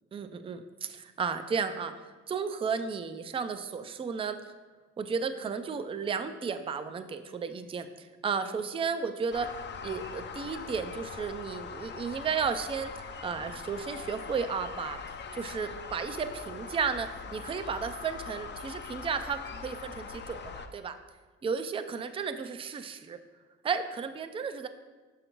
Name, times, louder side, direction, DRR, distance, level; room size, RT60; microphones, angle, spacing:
voice 1, 0.1-4.4 5.0-12.9 13.2-15.0 15.3-21.0 21.4-23.2 23.6-24.7, right 5 dB, 20° right, 9 dB, 0.3 m, -33 dB
sound 1, 9.3-20.7, left 5 dB, 35° left, 0.5 m, -42 dB
6.5 x 6.0 x 3.0 m, 1.3 s
cardioid pair, 90°, 30 cm